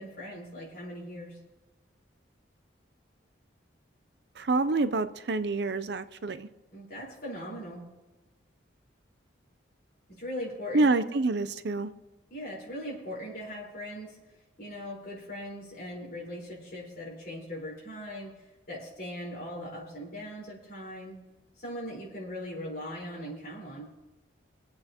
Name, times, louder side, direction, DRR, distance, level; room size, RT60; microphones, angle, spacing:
voice 1, 0.0-1.4 6.7-7.8 10.1-10.9 12.3-14.2 14.6-18.3 18.7-21.2 21.6-23.9, equal, 45° left, -4 dB, 4.6 m, -39 dB
voice 2, 4.4-6.5 10.7-11.9, right 3 dB, 60° right, 12 dB, 0.5 m, -27 dB
25.5 x 8.6 x 3.0 m, 1.1 s
head